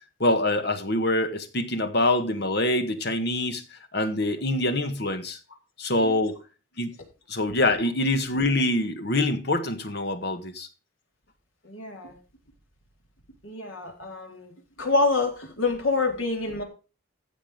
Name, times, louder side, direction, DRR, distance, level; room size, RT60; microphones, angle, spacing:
voice 1, 0.2-5.4 5.8-6.4 6.8-6.9 7.3-10.7, left 2 dB, 55° left, 1.7 m, -25 dB
voice 2, 11.6-12.1 13.4-14.5 14.8-16.6, left 3 dB, 80° left, 4.0 m, -27 dB
15.5 x 6.4 x 5.1 m
head